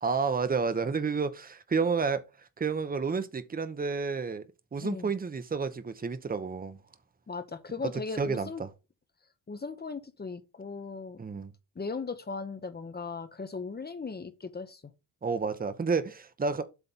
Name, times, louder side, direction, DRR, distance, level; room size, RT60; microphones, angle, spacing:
voice 1, 0.0-4.4 4.7-6.8 8.2-8.7 11.2-11.5 15.2-16.6, right 5 dB, 20° right, 0.8 m, -30 dB
voice 2, 4.8-5.1 7.3-8.6 9.5-11.2 11.8-14.8, left 4 dB, 25° left, 0.9 m, -38 dB
8.1 x 3.3 x 5.6 m
cardioid pair, 125°, 40 cm